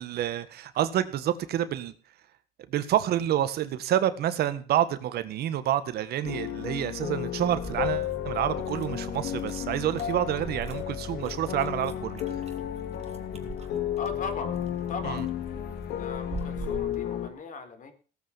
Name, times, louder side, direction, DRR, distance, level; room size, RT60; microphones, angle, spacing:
voice 1, 0.0-1.9 2.7-12.4 15.0-15.2, right 11 dB, 70° right, 12 dB, 1.7 m, -28 dB
sound 1, 6.2-17.3, left 10 dB, 85° left, 3.2 m, -33 dB
sound 2, 7.4-17.0, right 4 dB, 40° right, 3.6 m, -44 dB
voice 2, 13.9-14.6 14.9-15.3 16.0-17.9, left 4 dB, 50° left, 9 dB, 4.0 m, -38 dB
17.5 x 8.4 x 7.2 m, 0.39 s
cardioid pair, 110°, 17 cm